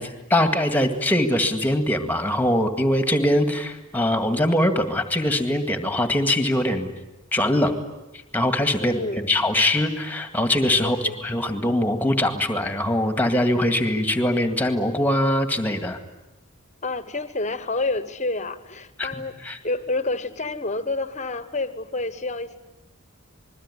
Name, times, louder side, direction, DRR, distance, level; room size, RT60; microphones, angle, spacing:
voice 1, 0.0-6.9 7.3-7.8 8.3-16.0 19.0-19.1 19.4-19.6, left 1 dB, 10° left, 7 dB, 1.9 m, -22 dB
voice 2, 8.8-9.4 10.8-11.2 16.8-22.6, left 2 dB, 30° left, 12 dB, 1.2 m, -29 dB
27.0 x 21.5 x 9.9 m, 0.99 s
head